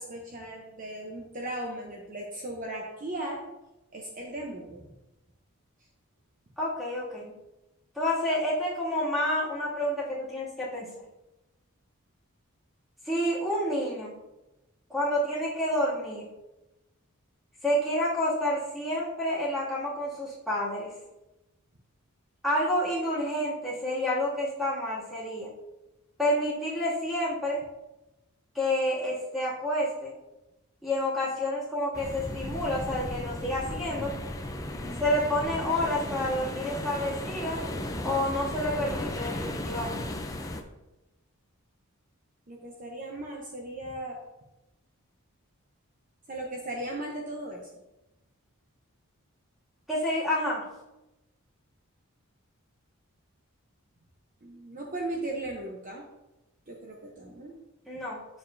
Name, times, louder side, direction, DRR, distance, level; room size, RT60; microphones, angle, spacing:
voice 1, 0.0-3.4 3.9-4.8 34.8-35.1 42.5-44.2 46.3-47.7 54.4-56.0 56.7-57.5, right 1 dB, 35° right, -1 dB, 0.8 m, -37 dB
voice 2, 6.6-7.3 7.9-10.9 13.0-14.1 14.9-16.3 17.6-20.9 22.4-25.5 26.2-27.6 28.5-30.1 30.8-34.2 35.0-37.6 38.0-40.1 49.9-50.6 57.9-58.2, left 1 dB, ahead, -8 dB, 2.4 m, -29 dB
sound 1, 31.9-40.6, left 1 dB, 15° left, 0.5 m, -35 dB
8.9 x 6.7 x 2.7 m, 0.99 s
head